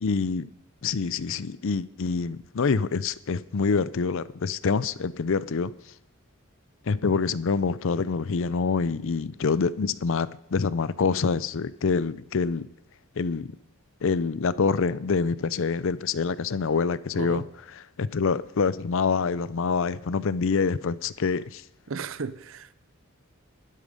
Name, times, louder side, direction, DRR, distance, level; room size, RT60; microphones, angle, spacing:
voice 1, 0.0-0.5 0.8-5.7 6.9-12.7 13.2-13.5 14.0-17.4 18.0-21.6, left 5 dB, 65° left, 0.5 m, -26 dB
voice 2, 17.1-17.5 21.9-22.7, right 5 dB, 65° right, 0.7 m, -34 dB
12.0 x 11.5 x 5.3 m
head